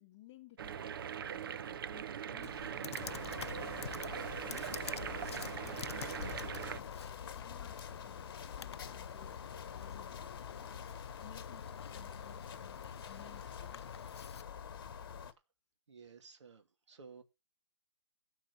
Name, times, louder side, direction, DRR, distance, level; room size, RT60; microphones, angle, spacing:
voice 1, 0.0-3.2 3.5-4.1 4.4-10.6 11.0-13.8, left 11 dB, 25° left, 1.9 m, -59 dB
sound 1, 0.6-6.8, right 8 dB, 50° right, 0.8 m, -41 dB
Computer keyboard, 2.4-14.4, left 8 dB, 65° left, 0.7 m, -49 dB
sound 2, 3.0-15.3, left 7 dB, 50° left, 1.7 m, -46 dB
voice 2, 15.9-17.2, right 5 dB, 85° right, 2.7 m, -55 dB
14.0 x 4.8 x 8.6 m
hypercardioid pair, 165°, 15 cm